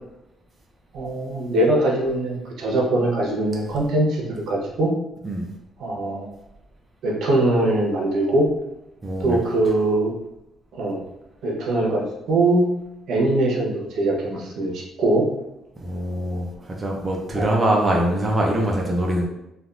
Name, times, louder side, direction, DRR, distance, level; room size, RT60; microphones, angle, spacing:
voice 1, 0.9-4.9 5.8-6.3 7.0-8.4 9.2-10.1 10.7-11.0 11.4-12.7 13.1-15.3 17.3-17.5, right 2 dB, 65° right, -1 dB, 0.8 m, -22 dB
voice 2, 9.0-9.4 15.8-19.2, right 1 dB, 20° right, -1 dB, 0.4 m, -23 dB
3.3 x 2.3 x 2.4 m, 0.88 s
cardioid pair, 145°, 0 cm